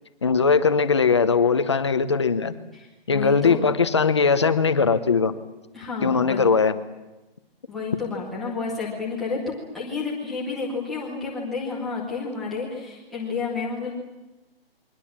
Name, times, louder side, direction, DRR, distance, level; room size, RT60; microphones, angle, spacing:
voice 1, 0.2-2.6 3.1-5.3 6.0-6.8, left 5 dB, 30° left, 11 dB, 0.9 m, -20 dB
voice 2, 3.1-3.6 5.7-6.4 7.7-13.9, left 4 dB, ahead, -8 dB, 0.8 m, -30 dB
28.5 x 23.0 x 7.4 m, 1.1 s
hypercardioid pair, 180°, 30 cm